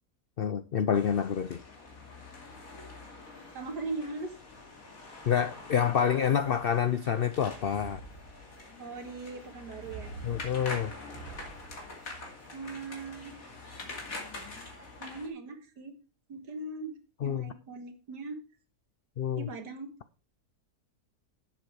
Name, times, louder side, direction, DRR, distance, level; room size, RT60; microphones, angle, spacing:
voice 1, 0.4-1.6 5.3-8.0 10.2-10.9 17.2-17.5 19.2-19.5, left 8 dB, 85° left, 12 dB, 0.5 m, -28 dB
sound 1, 0.9-15.3, left 2 dB, 55° left, 2.8 m, -45 dB
voice 2, 3.5-4.3 8.8-10.1 12.5-13.3 15.0-16.0 16.3-17.0 17.2-18.4 19.4-19.9, right 3 dB, 90° right, 7 dB, 2.1 m, -39 dB
sound 2, 7.7-8.8 9.8-12.2, right 4 dB, 60° right, 2.1 m, -48 dB
11.0 x 7.7 x 4.7 m, 0.33 s
omnidirectional pair, 1.7 m